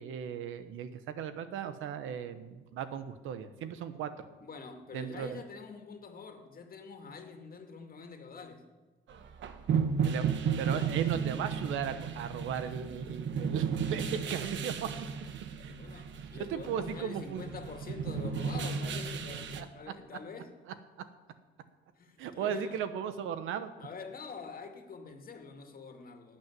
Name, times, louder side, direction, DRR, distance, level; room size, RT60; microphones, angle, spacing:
voice 1, 0.0-4.1 4.9-5.4 10.0-10.3 10.6-14.9 15.6-16.0 16.4-17.4 19.5-19.7 22.2-23.7, right 8 dB, 90° right, 1.1 m, -37 dB
voice 2, 4.4-8.6 10.6-11.2 15.7-20.5 22.0-22.8 23.8-26.4, left 4 dB, 45° left, 2.2 m, -46 dB
sound 1, 9.1-19.6, right 6 dB, 70° right, 1.2 m, -34 dB
11.5 x 8.7 x 9.4 m
cardioid pair, 90°, 20 cm